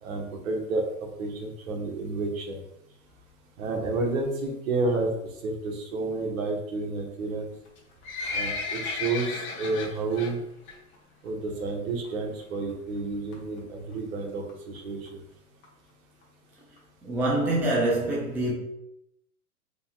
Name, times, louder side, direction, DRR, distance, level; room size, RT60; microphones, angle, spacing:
voice 1, 0.0-2.6 3.6-5.1 5.4-7.5 8.3-10.4 11.2-15.2, right 3 dB, 60° right, 1.3 m, -30 dB
Livestock farm animals working animals, 7.6-10.3 10.7-10.9 11.3-11.4 12.0-12.1 12.4-12.5 12.7-12.8 13.3-13.6 14.2-14.3 14.5-14.6 14.7-14.8 15.1-15.2 15.6-15.7 16.2-16.3 16.8-16.9, left 4 dB, 25° left, 1.3 m, -33 dB
voice 2, 17.0-18.5, right 1 dB, 5° right, 0.5 m, -25 dB
5.4 x 4.0 x 2.3 m
hypercardioid pair, 115°, 45 cm